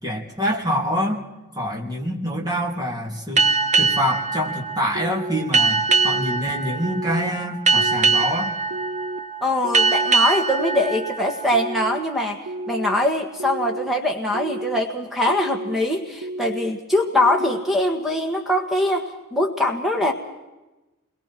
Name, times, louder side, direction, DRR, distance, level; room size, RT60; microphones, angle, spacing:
voice 1, 0.0-1.2 1.5-3.5 3.8-8.5, equal, 15° right, 0 dB, 3.3 m, -26 dB
sound 1, 3.4-12.5, right 4 dB, 35° right, 0.7 m, -23 dB
sound 2, 4.9-5.4 5.9-6.4 6.8-7.3 7.8-8.2 8.7-9.2 9.6-10.1 10.6-11.1 11.5-12.0 12.5-12.9 13.4-13.9 14.3-14.8 15.3-15.8 16.2-16.7 17.1-17.6, right 1 dB, 70° right, 1.0 m, -32 dB
voice 2, 9.4-12.4 12.7-20.1, left 1 dB, ahead, 2 dB, 1.7 m, -22 dB
29.0 x 22.5 x 4.6 m, 1.1 s
head